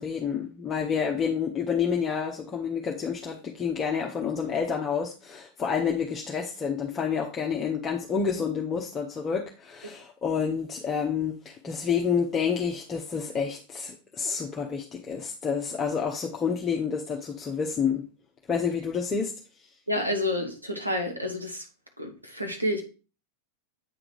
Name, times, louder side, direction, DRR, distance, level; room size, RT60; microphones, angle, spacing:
voice 1, 0.0-18.0 18.5-19.3, left 6 dB, 20° left, 0 dB, 0.9 m, -29 dB
voice 2, 19.9-21.6 22.0-22.8, left 1 dB, 85° right, 2 dB, 1.4 m, -29 dB
8.4 x 3.8 x 4.7 m, 0.34 s
figure-of-eight pair, 90°, 0 cm